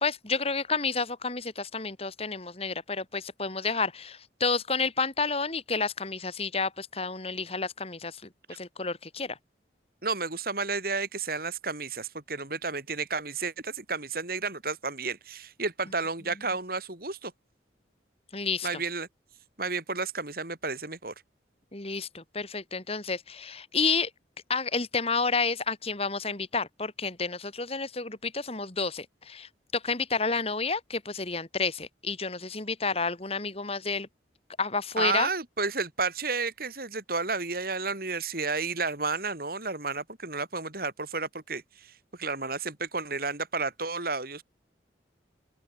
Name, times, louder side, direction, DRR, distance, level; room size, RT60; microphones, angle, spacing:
voice 1, 0.0-8.2 8.6-9.4 18.3-18.7 21.7-24.1 24.5-34.1 34.6-35.3, left 4 dB, 35° left, 2.4 m, -30 dB
voice 2, 10.0-17.3 18.6-19.1 19.6-21.1 35.0-41.9 42.2-44.4, right 4 dB, 55° right, 3.8 m, -32 dB
open air
head